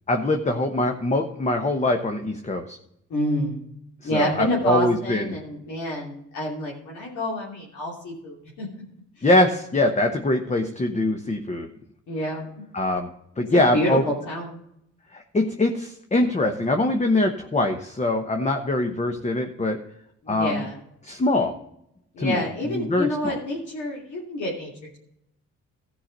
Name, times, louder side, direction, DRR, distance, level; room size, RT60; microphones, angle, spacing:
voice 1, 0.1-2.8 4.1-5.3 9.2-11.7 12.7-13.1 13.4-14.0 15.1-19.8 20.3-20.6 21.1-21.5 22.2-22.4 22.7-23.3, left 1 dB, 25° left, 5 dB, 1.1 m, -23 dB
voice 2, 3.1-3.6 4.0-8.7 9.2-9.3 12.1-12.4 13.4-14.6 20.2-20.8 22.1-25.0, left 1 dB, 75° left, -5 dB, 3.0 m, -28 dB
14.0 x 5.8 x 5.3 m, 0.76 s
cardioid pair, 90°, 30 cm